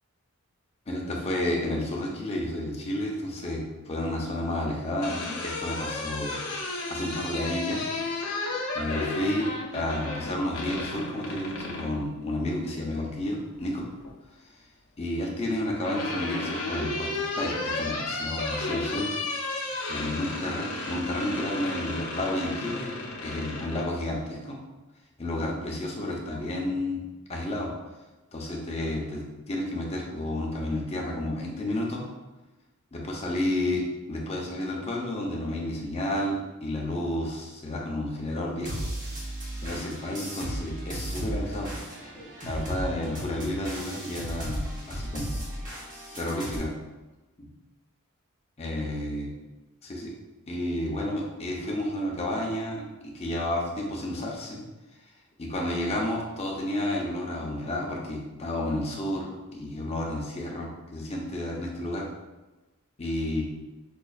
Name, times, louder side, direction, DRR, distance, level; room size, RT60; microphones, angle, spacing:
voice 1, 0.9-6.4 6.9-7.8 8.7-13.9 15.0-19.1 19.9-22.9 23.2-24.6 25.2-27.0 27.3-27.7 28.3-32.0 32.9-38.8 39.6-41.8 42.4-44.6 44.9-45.4 46.2-46.7 47.4-47.5 48.6-49.3 49.8-50.1 50.5-54.6 55.4-62.1 63.0-63.4, left 1 dB, 30° left, -1 dB, 0.6 m, -31 dB
sound 1, 4.8-12.0 13.4-14.1 15.3-23.9, left 2 dB, 70° left, 0.6 m, -33 dB
sound 2, 38.6-46.6, equal, 35° right, 1.0 m, -35 dB
5.0 x 2.3 x 2.4 m, 1.1 s
head